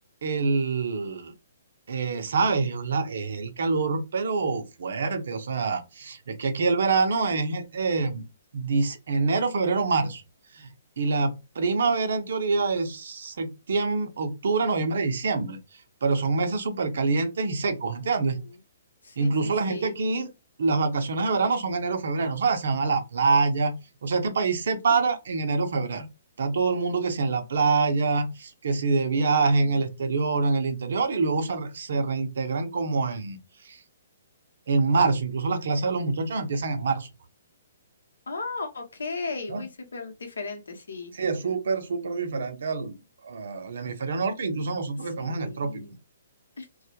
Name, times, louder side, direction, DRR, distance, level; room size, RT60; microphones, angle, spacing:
voice 1, 0.2-1.3 1.9-8.2 8.5-10.2 10.6-10.7 11.0-15.6 16.0-18.4 19.2-20.3 20.6-26.1 26.4-33.4 34.7-37.1 39.5-39.6 41.2-42.9 43.2-45.8, right 4 dB, 70° right, 0.6 m, -26 dB
voice 2, 18.0-18.5 19.0-20.0 28.6-29.9 38.3-41.1 45.0-46.0 46.6-46.7, left 3 dB, 85° left, 0.8 m, -37 dB
2.2 x 2.0 x 2.8 m
hypercardioid pair, 145°, 0 cm